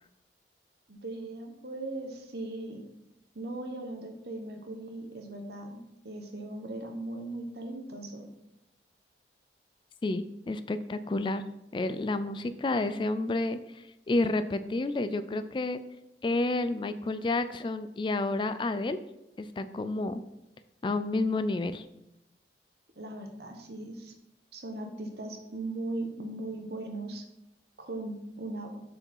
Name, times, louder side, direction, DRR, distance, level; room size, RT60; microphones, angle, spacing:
voice 1, 0.9-2.8 3.3-8.3 23.0-24.1 24.5-27.2 27.8-28.7, right 2 dB, 65° right, 4 dB, 1.3 m, -38 dB
voice 2, 10.0-11.4 11.7-15.8 16.2-19.0 19.4-20.2 20.8-21.9, left 2 dB, 25° left, 11 dB, 0.3 m, -30 dB
6.8 x 4.8 x 5.4 m, 0.88 s
head